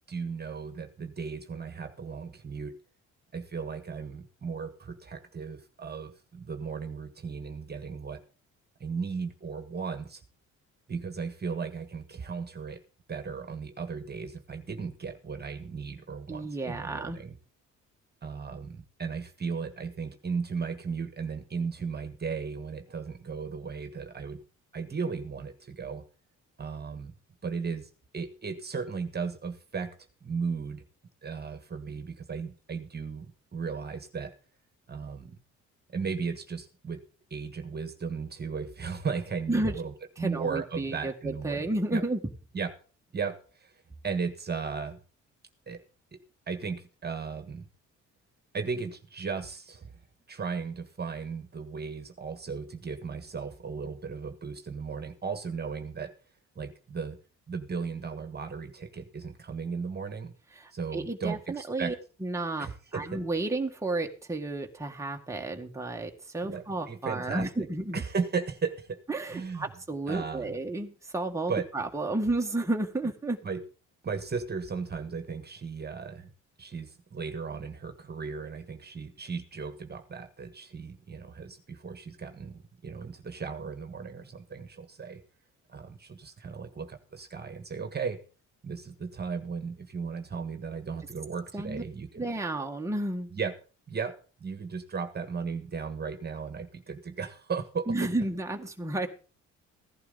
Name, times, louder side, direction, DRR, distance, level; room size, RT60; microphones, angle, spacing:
voice 1, 0.1-2.7 3.3-8.2 8.8-10.2 10.9-12.8 13.1-17.3 18.2-24.4 24.7-26.0 26.6-27.1 27.4-29.9 30.2-30.8 31.2-34.3 34.9-35.4 35.9-37.0 37.3-42.0 42.5-42.7 43.1-43.7 44.0-45.0 45.7-45.8 46.1-46.2 46.5-47.6 48.5-49.9 50.3-56.1 56.5-57.2 57.5-60.3 60.7-61.9 62.6-63.2 66.4-67.5 67.9-69.0 69.3-69.7 70.1-70.6 71.5-71.7 73.4-73.6 74.0-76.3 76.6-85.2 85.7-88.2 88.6-92.3 93.3-93.5 93.9-98.1, right 5 dB, 35° right, 8 dB, 1.6 m, -36 dB
voice 2, 16.3-17.2 39.5-39.7 40.2-42.2 60.6-61.9 62.2-62.7 62.9-68.0 69.1-73.4 91.5-91.8 92.2-93.3 97.9-99.1, right 2 dB, 10° right, 3 dB, 1.6 m, -32 dB
16.0 x 11.0 x 4.0 m, 0.36 s
cardioid pair, 90°, 30 cm